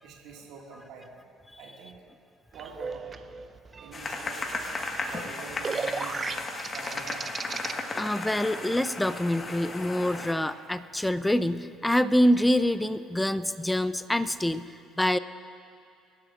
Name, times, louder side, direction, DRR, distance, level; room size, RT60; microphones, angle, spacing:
voice 1, 0.0-1.2 1.6-2.0 2.5-3.2 3.8-6.2 6.7-7.4, right 4 dB, 65° right, -1 dB, 1.9 m, -46 dB
sound 1, 2.5-7.7, right 5 dB, 35° right, 0.6 m, -36 dB
sound 2, 3.9-10.3, left 3 dB, 35° left, 1.4 m, -35 dB
voice 2, 7.9-15.2, left 1 dB, 10° left, 14 dB, 0.5 m, -26 dB
24.5 x 12.0 x 2.5 m, 2.5 s
hypercardioid pair, 55°, 0 cm